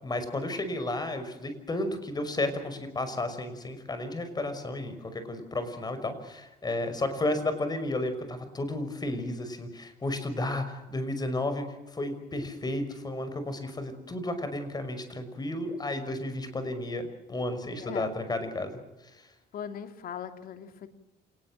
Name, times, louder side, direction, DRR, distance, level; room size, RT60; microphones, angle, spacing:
voice 1, 0.0-11.6 11.9-18.7 19.1-19.3, left 2 dB, 25° left, 9 dB, 5.9 m, -32 dB
voice 2, 17.8-18.1 19.5-20.9, left 8 dB, 60° left, 7 dB, 3.0 m, -39 dB
28.0 x 19.5 x 7.6 m, 0.97 s
cardioid pair, 110°, 17 cm